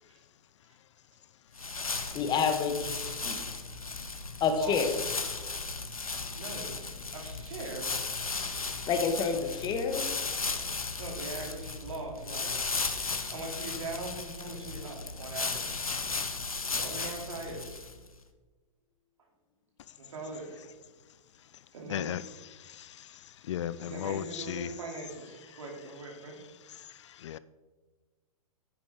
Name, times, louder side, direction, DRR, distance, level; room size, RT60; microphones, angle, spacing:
sound 1, 1.5-18.1, left 4 dB, 85° left, 0.8 m, -35 dB
voice 1, 2.1-2.9 3.2-3.4 4.4-4.9 8.9-10.1, left 5 dB, 25° left, 1.1 m, -28 dB
voice 2, 4.5-5.0 6.3-6.7 7.1-8.0 11.0-12.6 13.3-15.9 16.7-17.8 20.0-20.6 21.7-22.1 23.8-26.4, right 3 dB, 65° right, 2.6 m, -41 dB
voice 3, 21.9-22.2 23.5-24.7 27.2-27.4, left 11 dB, 55° left, 0.4 m, -34 dB
9.4 x 9.3 x 3.6 m
figure-of-eight pair, 105°, 18 cm